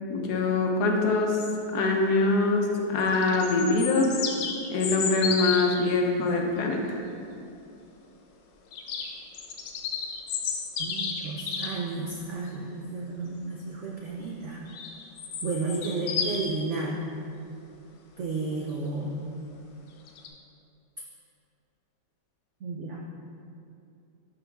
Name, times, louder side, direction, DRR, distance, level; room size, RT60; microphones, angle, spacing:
voice 1, 0.1-1.4 1.7-4.1 4.7-6.8, left 3 dB, 65° left, 1 dB, 1.2 m, -24 dB
sound 1, 3.0-5.9 8.7-11.8 14.7-16.5 20.1-20.3, left 6 dB, 85° left, 1.4 m, -32 dB
voice 2, 10.8-14.7 15.4-17.0 18.2-19.2 22.6-23.0, right 3 dB, 75° right, -1 dB, 0.6 m, -32 dB
11.5 x 3.9 x 3.4 m, 2.5 s
omnidirectional pair, 2.0 m